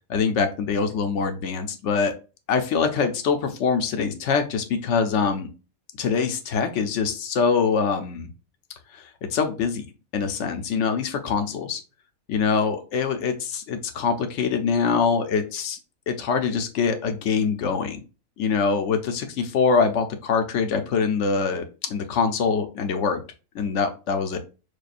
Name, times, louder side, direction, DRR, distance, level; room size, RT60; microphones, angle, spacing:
voice 1, 0.1-2.1 2.5-5.5 6.0-8.3 8.9-9.9 10.1-11.8 12.3-15.8 16.1-18.0 18.4-23.2 23.5-24.4, left 5 dB, 65° left, 6 dB, 0.9 m, -24 dB
6.5 x 2.2 x 2.5 m, 0.33 s
omnidirectional pair, 1.4 m